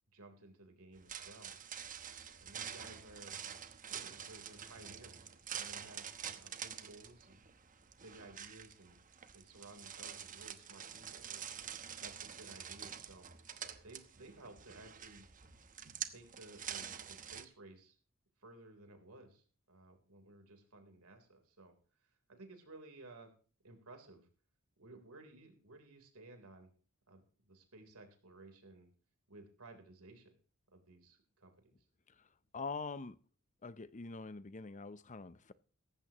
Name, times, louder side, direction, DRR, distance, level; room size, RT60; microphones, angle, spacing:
voice 1, 0.1-1.6 2.4-3.4 3.9-7.4 8.0-9.0 9.3-11.4 12.0-13.3 13.8-15.3 16.1-18.0 18.4-21.8 22.0-23.3 23.6-24.3 24.8-26.7 27.1-28.9 29.3-30.3 30.7-31.7, right 2 dB, 85° right, 3.7 m, -56 dB
sound 1, 0.9-17.4, right 8 dB, 40° right, 1.0 m, -47 dB
voice 2, 32.1-33.2 33.6-35.5, left 4 dB, 35° left, 0.7 m, -45 dB
17.5 x 14.5 x 3.0 m
head